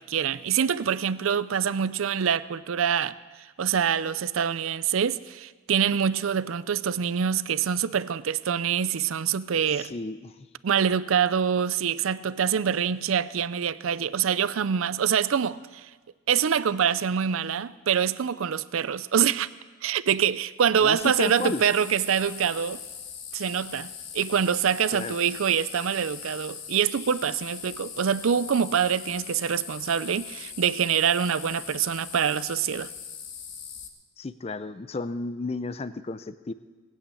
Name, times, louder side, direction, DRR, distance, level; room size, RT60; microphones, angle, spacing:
voice 1, 0.0-3.2 3.6-9.9 10.6-15.9 16.3-19.5 19.8-22.8 23.3-32.9, right 7 dB, 80° right, 0.5 m, -25 dB
voice 2, 9.8-10.3 20.8-21.6 24.9-25.1 34.2-36.5, left 3 dB, 30° left, 0.5 m, -32 dB
sound 1, 21.0-33.9, left 7 dB, 65° left, 1.5 m, -41 dB
19.5 x 8.5 x 8.5 m
head